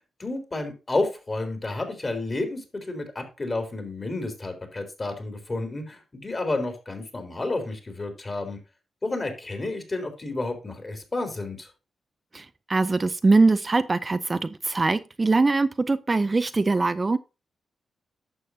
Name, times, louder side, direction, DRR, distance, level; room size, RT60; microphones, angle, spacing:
voice 1, 0.2-8.6 9.0-11.7, left 2 dB, 35° left, 3.3 m, -31 dB
voice 2, 12.3-17.2, right 3 dB, 30° right, 0.5 m, -22 dB
11.5 x 7.1 x 2.7 m
cardioid pair, 80°, 0 cm